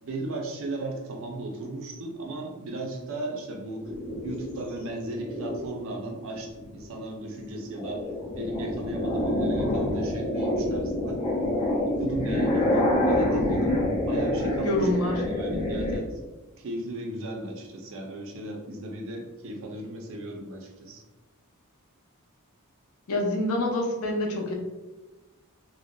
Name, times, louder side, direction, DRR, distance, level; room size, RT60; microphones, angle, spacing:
voice 1, 0.0-3.9 4.2-8.0 8.4-11.2 11.8-16.2 16.6-21.0, right 2 dB, 60° right, 1 dB, 0.5 m, -35 dB
sound 1, 3.8-5.8 6.4-6.8 7.2-16.0, left 1 dB, 20° left, 0.4 m, -27 dB
voice 2, 14.6-15.2 23.1-24.5, left 1 dB, 75° left, 0 dB, 0.5 m, -26 dB
2.6 x 2.1 x 2.2 m, 1.1 s
head